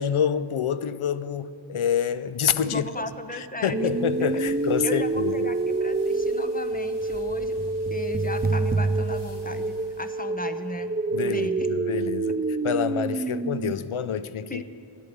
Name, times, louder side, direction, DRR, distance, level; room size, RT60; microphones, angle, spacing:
voice 1, 0.0-2.8 3.3-5.5 11.1-12.4 12.6-14.6, left 8 dB, 80° left, 0.6 m, -27 dB
voice 2, 2.6-3.9 4.2-4.3 4.8-10.9 11.2-11.7 14.5-14.6, left 2 dB, 15° left, 0.8 m, -36 dB
sound 1, 3.7-10.2, right 1 dB, 55° left, 4.3 m, -54 dB
sound 2, 3.7-13.7, right 3 dB, 20° right, 0.3 m, -27 dB
12.0 x 8.3 x 9.5 m
wide cardioid pair, 50°, 49 cm